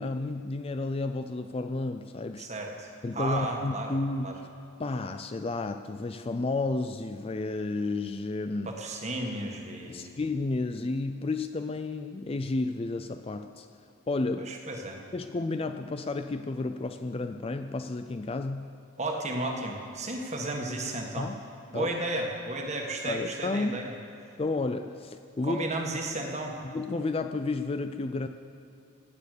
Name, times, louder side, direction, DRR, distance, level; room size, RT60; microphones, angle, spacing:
voice 1, 0.0-2.5 3.0-4.4 4.8-8.7 9.9-13.7 14.1-14.5 15.1-18.7 21.2-21.4 21.7-21.9 23.0-23.8 24.4-25.7 26.6-28.3, left 3 dB, 25° left, 9 dB, 0.4 m, -31 dB
voice 2, 2.4-3.9 4.2-4.4 8.6-10.2 14.4-15.0 19.0-21.3 21.7-23.9 25.4-26.5, right 2 dB, 30° right, 1 dB, 1.7 m, -33 dB
17.0 x 9.4 x 6.7 m, 2.6 s
head